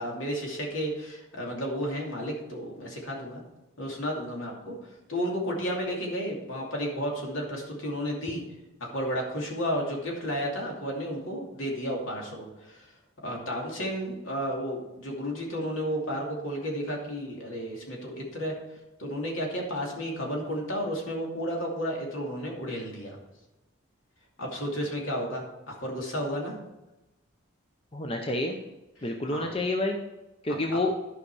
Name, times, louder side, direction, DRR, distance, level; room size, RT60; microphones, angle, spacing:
voice 1, 0.0-3.4 3.8-4.7 5.1-8.4 8.8-12.9 13.2-18.5 19.0-23.2 24.4-26.6 29.0-29.5 30.5-30.6, equal, 70° left, -1 dB, 2.6 m, -32 dB
voice 2, 27.9-28.6 29.0-30.0 30.4-30.9, left 2 dB, 25° left, 2 dB, 0.7 m, -28 dB
11.5 x 5.4 x 4.8 m, 1.0 s
head